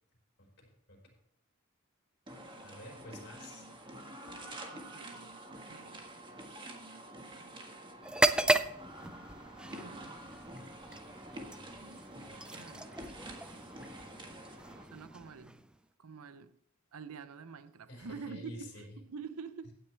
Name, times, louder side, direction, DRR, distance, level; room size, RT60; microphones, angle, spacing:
voice 1, 0.4-1.0 2.6-3.7 17.9-19.0, left 1 dB, 50° left, 4.3 m, -49 dB
sound 1, 2.3-14.8, right 1 dB, 20° right, 1.5 m, -48 dB
voice 2, 4.7-6.0 9.7-10.2 12.5-13.0 14.9-15.6 16.0-16.6 16.9-19.7, right 5 dB, 80° right, 0.6 m, -47 dB
sound 2, 8.0-15.8, right 2 dB, 5° right, 0.4 m, -35 dB
16.0 x 9.3 x 3.3 m
head